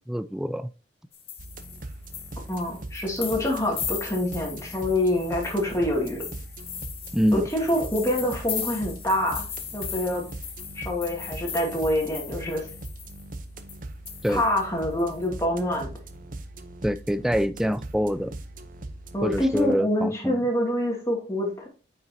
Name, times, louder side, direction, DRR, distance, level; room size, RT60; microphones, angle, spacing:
voice 1, 0.1-0.7 7.1-7.5 14.2-14.4 16.8-18.3 19.2-20.5, equal, 5° right, 0.4 m, -25 dB
sound 1, 1.1-13.3 13.7-13.8 14.1-15.3, left 8 dB, 35° left, 1.3 m, -38 dB
sound 2, 1.4-19.7, right 1 dB, 50° right, 0.8 m, -40 dB
voice 2, 2.5-6.2 7.3-9.5 9.7-10.3 10.8-12.7 14.3-16.0 19.1-21.7, left 1 dB, 15° left, 2.4 m, -26 dB
9.1 x 5.7 x 2.8 m
head